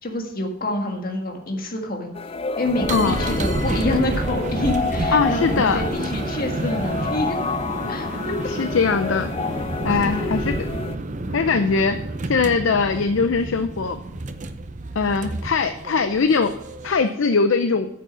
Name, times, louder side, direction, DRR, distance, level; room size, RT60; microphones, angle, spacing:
voice 1, 0.0-2.1 2.6-7.4 7.9-8.3 10.0-10.3, left 1 dB, 50° left, 2 dB, 1.7 m, -27 dB
sound 1, 2.1-11.0, left 4 dB, 30° left, 0.3 m, -29 dB
sound 2, 2.6-17.1, right 2 dB, 40° right, 0.7 m, -29 dB
voice 2, 5.1-5.8 8.4-9.3 9.8-10.7 11.3-14.0 14.9-16.5 16.8-17.9, left 4 dB, 85° left, 9 dB, 0.6 m, -21 dB
9.3 x 7.5 x 5.7 m, 0.84 s
head